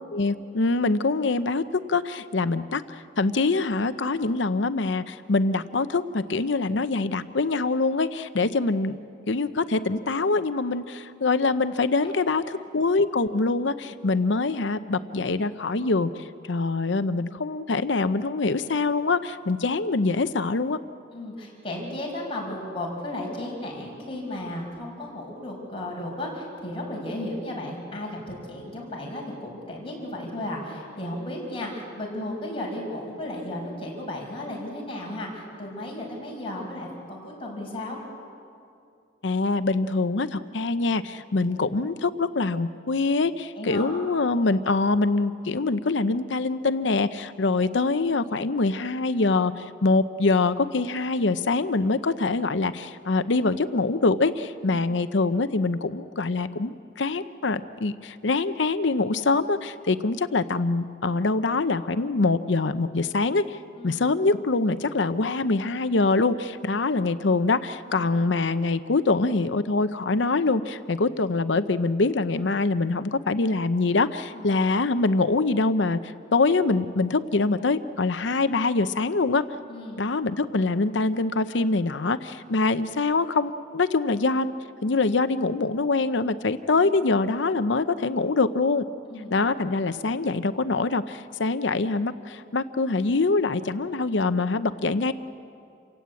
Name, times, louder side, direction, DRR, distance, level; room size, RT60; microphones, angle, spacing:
voice 1, 0.1-1.6 1.9-9.0 9.3-16.1 16.5-20.8 39.2-63.6 63.8-76.0 76.3-79.4 80.0-84.5 84.8-88.8 89.3-95.1, left 3 dB, 70° left, 11 dB, 0.7 m, -24 dB
voice 2, 12.0-12.6 21.1-38.0 43.5-44.1 63.8-64.0 67.9-68.1 74.3-74.5 79.7-80.0 89.1-89.3, left 1 dB, 30° left, -2 dB, 5.7 m, -34 dB
29.0 x 17.0 x 8.4 m, 2.5 s
head